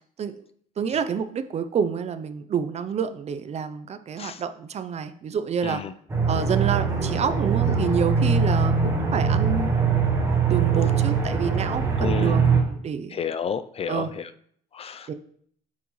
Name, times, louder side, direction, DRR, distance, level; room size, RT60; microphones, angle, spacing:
voice 1, 0.8-5.8 6.3-9.7 10.5-13.2 13.9-14.1 15.1-15.2, right 7 dB, 40° right, 11 dB, 0.5 m, -28 dB
Aircraft, 6.1-12.6, right 5 dB, 15° right, 1.5 m, -22 dB
voice 2, 12.0-12.4 13.1-14.3 14.7-15.1, left 7 dB, 35° left, 12 dB, 0.4 m, -31 dB
7.9 x 5.8 x 3.1 m, 0.62 s
cardioid pair, 110°, 17 cm